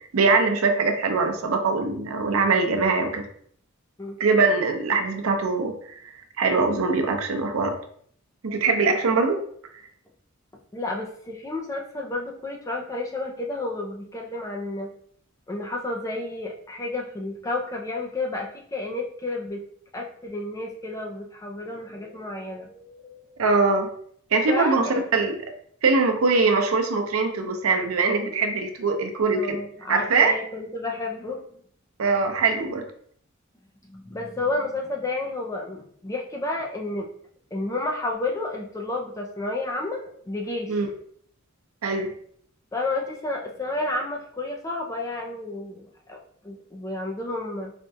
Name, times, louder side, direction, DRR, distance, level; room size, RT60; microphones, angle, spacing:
voice 1, 0.1-3.2 4.2-6.0 6.4-7.8 8.4-9.4 23.4-23.9 24.3-25.4 25.8-29.6 29.9-30.3 32.0-32.8 40.7-40.9 41.8-42.1, right 4 dB, 90° right, 5 dB, 0.5 m, -22 dB
voice 2, 10.7-14.9 15.5-19.6 19.9-23.4 24.5-25.0 29.3-31.4 33.8-37.1 37.5-40.8 42.7-46.2 46.4-47.7, left 2 dB, 15° left, 0 dB, 0.4 m, -31 dB
4.2 x 2.3 x 2.6 m, 0.62 s
head